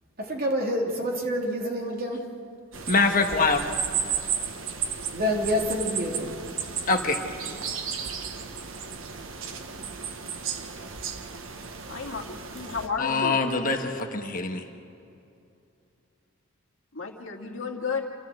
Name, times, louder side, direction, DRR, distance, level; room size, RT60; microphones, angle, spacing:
voice 1, 0.2-2.2 5.1-6.3, equal, 45° right, 0 dB, 2.9 m, -27 dB
sound 1, 2.7-12.9, right 7 dB, 75° right, 1.3 m, -34 dB
voice 2, 2.9-3.6 6.9-7.2 13.0-14.6, left 4 dB, 40° left, 4 dB, 1.5 m, -24 dB
voice 3, 11.9-13.4 16.9-18.0, left 5 dB, 75° left, 2 dB, 2.2 m, -32 dB
27.5 x 14.0 x 7.8 m, 2.6 s
head